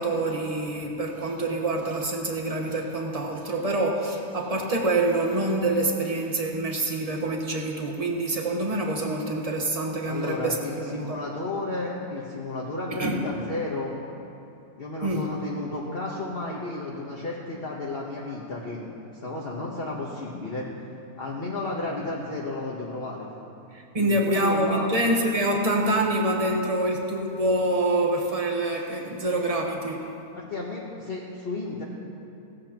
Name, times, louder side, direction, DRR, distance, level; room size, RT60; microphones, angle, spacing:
voice 1, 0.0-11.2 13.0-13.2 15.0-15.3 23.7-30.1, right 1 dB, 25° right, 1 dB, 1.2 m, -26 dB
voice 2, 10.1-13.9 14.8-18.9 19.2-20.7 21.2-23.3 24.0-24.9 30.4-31.8, left 2 dB, 40° left, -4 dB, 1.3 m, -32 dB
17.5 x 14.5 x 3.0 m, 2.7 s
omnidirectional pair, 1.6 m